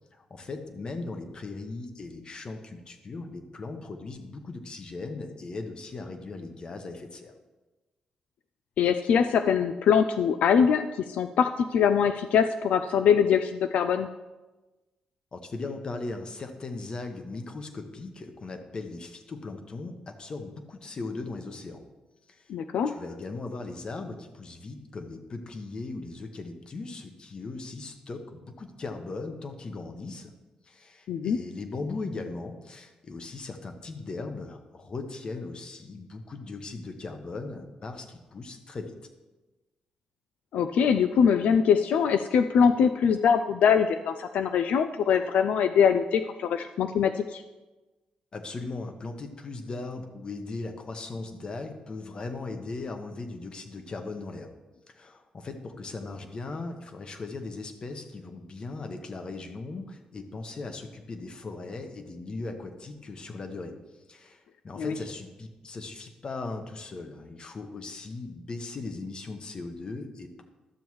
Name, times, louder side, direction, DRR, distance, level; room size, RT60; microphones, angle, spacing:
voice 1, 0.1-7.3 15.3-21.8 22.3-22.5 22.9-30.3 30.6-38.9 48.3-54.5 54.9-63.8 64.1-70.4, left 3 dB, 40° left, 6 dB, 0.9 m, -38 dB
voice 2, 8.8-14.1 22.5-22.9 31.1-31.4 40.5-47.4 64.8-64.9, left 7 dB, 75° left, 8 dB, 0.3 m, -23 dB
12.5 x 7.0 x 3.1 m, 1.1 s
cardioid pair, 120°, 2 cm